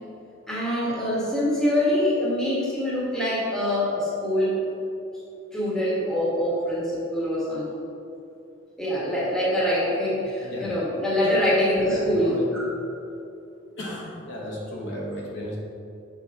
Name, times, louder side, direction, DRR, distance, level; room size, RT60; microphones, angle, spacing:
voice 1, 0.5-4.6 5.5-7.7 8.8-12.7, left 1 dB, 5° left, -7 dB, 1.3 m, -24 dB
voice 2, 11.9-12.5 13.8-15.6, equal, 75° left, -4 dB, 1.2 m, -34 dB
6.3 x 4.3 x 3.5 m, 2.7 s
head